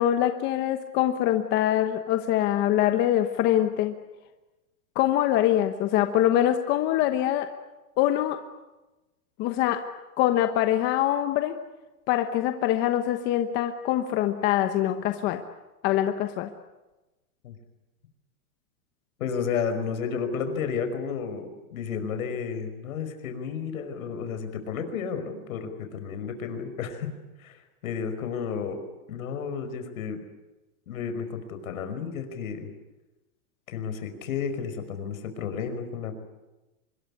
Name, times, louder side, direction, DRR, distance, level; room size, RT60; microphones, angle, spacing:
voice 1, 0.0-4.0 4.9-7.5 8.0-8.4 9.4-9.8 10.2-11.5 12.1-15.4 15.8-16.5, left 12 dB, 25° left, 8 dB, 1.0 m, -24 dB
voice 2, 19.2-27.1 27.4-28.8 29.1-30.2 30.9-32.7 33.7-36.2, left 6 dB, 70° left, 8 dB, 5.4 m, -32 dB
25.5 x 21.5 x 9.9 m, 1.1 s
supercardioid pair, 160°, 44 cm